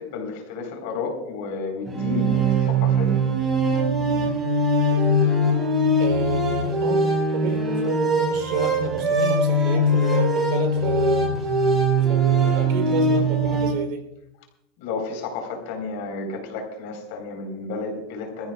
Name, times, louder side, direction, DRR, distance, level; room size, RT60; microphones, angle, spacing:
voice 1, 0.0-3.1 14.8-18.5, left 4 dB, 75° left, 4 dB, 4.0 m, -32 dB
sound 1, 1.8-13.7, right 1 dB, 15° right, 4.5 m, -21 dB
voice 2, 6.0-7.0 7.3-11.3 12.1-14.0, right 7 dB, 65° right, 5 dB, 3.4 m, -30 dB
25.5 x 14.5 x 2.4 m, 0.86 s
cardioid pair, 165°, 0 cm